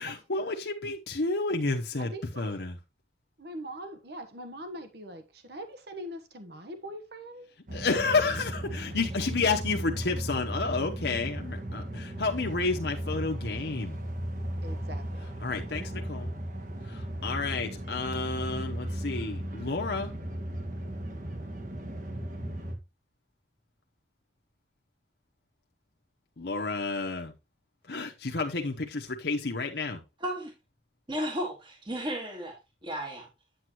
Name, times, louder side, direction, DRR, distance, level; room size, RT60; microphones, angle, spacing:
voice 1, 0.0-2.8 7.7-14.0 15.4-16.3 16.9-20.1 26.4-27.3 27.9-30.0, left 3 dB, 65° left, 0.9 m, -30 dB
voice 2, 2.0-2.6 3.4-7.5 8.0-8.3 9.1-9.2 14.6-15.3, right 1 dB, 60° right, 1.2 m, -42 dB
sound 1, 7.7-22.8, right 1 dB, 45° right, 1.6 m, -36 dB
voice 3, 30.2-30.5 31.1-32.6 32.8-33.3, equal, 25° right, 1.6 m, -34 dB
8.8 x 7.8 x 3.0 m
head